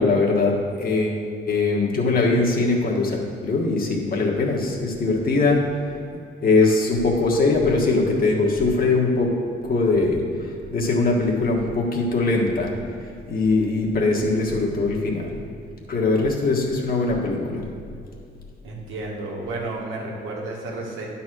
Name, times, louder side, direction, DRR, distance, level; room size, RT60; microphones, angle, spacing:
voice 1, 0.0-5.7 6.4-13.0 13.3-15.3 15.9-17.7, left 3 dB, 45° left, -1 dB, 1.6 m, -21 dB
voice 2, 18.6-21.1, right 2 dB, 90° right, -2 dB, 1.6 m, -32 dB
9.6 x 4.3 x 6.3 m, 2.5 s
cardioid pair, 90°, 20 cm